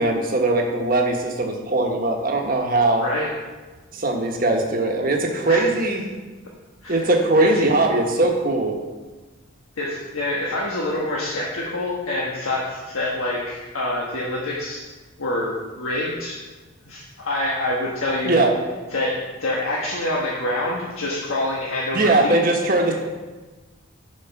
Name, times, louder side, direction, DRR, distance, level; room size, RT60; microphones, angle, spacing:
voice 1, 0.0-3.0 3.9-6.0 6.9-8.8 18.2-18.5 21.9-22.9, right 2 dB, 40° right, 1 dB, 1.3 m, -20 dB
voice 2, 3.0-3.3 5.5-5.8 6.8-7.6 9.8-14.8 15.2-16.4 16.9-18.5 18.9-22.4, left 1 dB, 80° left, -4 dB, 1.4 m, -26 dB
11.0 x 5.1 x 5.9 m, 1.3 s
head